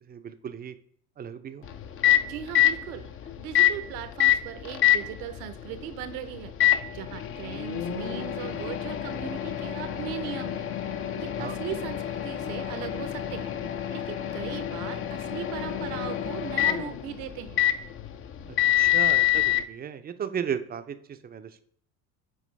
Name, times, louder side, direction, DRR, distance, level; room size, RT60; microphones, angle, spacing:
voice 1, 0.0-0.7 1.2-1.7 11.4-11.6 18.5-21.6, right 8 dB, 20° right, 10 dB, 0.5 m, -35 dB
Microwave oven, 1.6-19.6, left 12 dB, 30° left, 0.5 m, -27 dB
voice 2, 2.2-3.1 3.4-10.7 11.1-13.5 13.9-17.6, right 10 dB, 65° right, 11 dB, 0.9 m, -38 dB
7.6 x 4.5 x 3.3 m, 0.62 s
hypercardioid pair, 70°, 47 cm